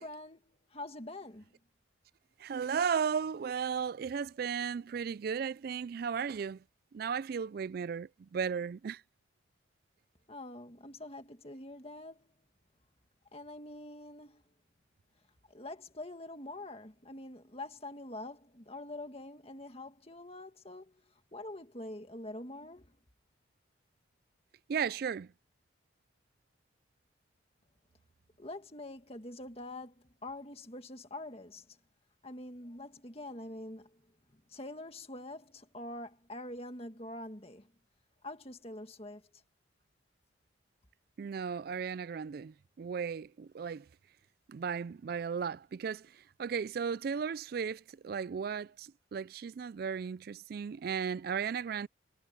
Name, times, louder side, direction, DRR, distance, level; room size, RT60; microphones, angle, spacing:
voice 1, 0.0-1.5 10.3-12.3 13.3-14.4 15.5-23.0 28.4-31.8 32.2-34.0 34.5-37.7 38.2-39.2, left 1 dB, 30° left, 1.9 m, -45 dB
voice 2, 2.4-6.6 6.9-9.0 24.7-25.3 41.2-43.9 44.5-51.9, right 6 dB, 50° right, 0.3 m, -35 dB
head